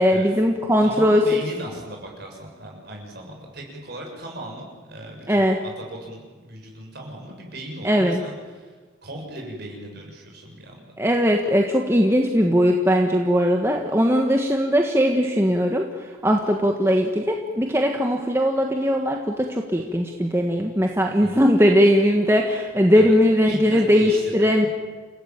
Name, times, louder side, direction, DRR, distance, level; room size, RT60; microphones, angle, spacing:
voice 1, 0.0-1.4 5.3-5.6 7.8-8.2 11.0-24.7, equal, 10° right, 2 dB, 1.5 m, -19 dB
voice 2, 0.8-8.7 9.0-10.9 21.2-21.4 22.9-23.1 23.5-24.7, right 1 dB, 50° right, 0 dB, 6.8 m, -37 dB
29.5 x 16.5 x 9.0 m, 1.4 s
head